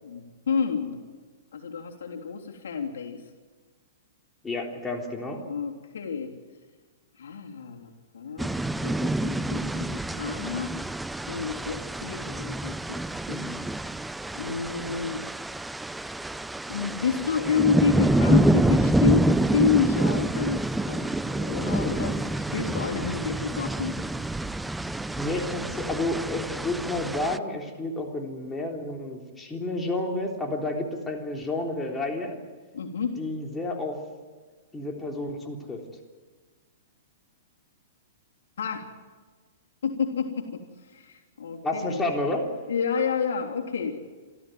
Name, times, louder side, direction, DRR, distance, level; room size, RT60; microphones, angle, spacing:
voice 1, 0.0-1.0 1.5-3.2 5.4-6.3 7.2-10.7 11.3-13.0 13.3-13.6 14.3-15.2 16.7-23.9 32.7-33.2 38.6-38.9 39.8-40.6 40.9-42.1 42.7-44.0, left 6 dB, 75° left, 2 dB, 3.3 m, -29 dB
voice 2, 4.4-5.4 25.2-32.4 33.2-34.0 34.7-35.8 41.6-42.5, left 2 dB, 10° left, 1 dB, 3.5 m, -30 dB
sound 1, 8.4-27.4, right 2 dB, 5° right, 0.6 m, -27 dB
27.0 x 14.0 x 9.3 m, 1.4 s
hypercardioid pair, 125°, 0 cm